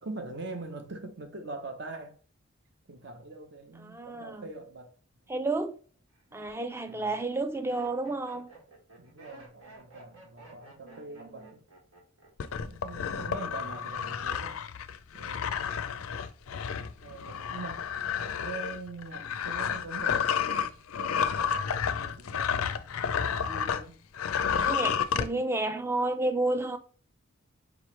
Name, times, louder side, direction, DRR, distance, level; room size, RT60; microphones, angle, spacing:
voice 1, 0.0-2.2 2.9-4.9 6.9-7.1 9.0-11.6 12.6-14.6 15.1-15.7 16.5-16.7 17.0-17.9 18.2-22.7 23.4-24.0, right 3 dB, 55° right, 0.8 m, -43 dB
voice 2, 3.8-4.5 5.3-5.8 6.3-8.5 10.9-11.3 24.6-26.8, right 2 dB, 10° right, 0.3 m, -31 dB
Laughter, 4.9-5.3 5.9-12.6 12.8-13.3, right 3 dB, 85° right, 1.7 m, -54 dB
sound 1, 12.4-23.8 24.1-25.3, left 7 dB, 85° left, 0.4 m, -31 dB
4.8 x 3.1 x 3.1 m
head